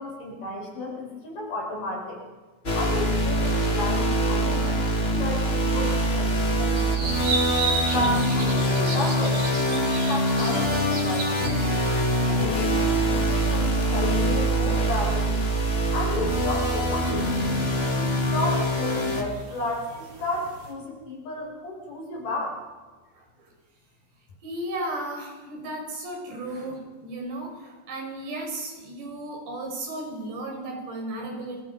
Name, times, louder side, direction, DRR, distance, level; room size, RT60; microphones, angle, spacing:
voice 1, 0.0-2.2 2.7-7.1 7.6-11.6 12.2-15.3 15.9-17.4 17.9-22.6, left 2 dB, 50° left, -1 dB, 7.5 m, -32 dB
sound 1, 2.6-19.2, right 1 dB, 20° left, 1.9 m, -24 dB
sound 2, 5.9-20.7, right 4 dB, 40° right, 5.0 m, -36 dB
voice 2, 23.1-23.5 24.4-31.6, right 1 dB, 90° right, 2 dB, 7.7 m, -35 dB
29.5 x 23.5 x 5.7 m, 1.3 s
omnidirectional pair, 4.8 m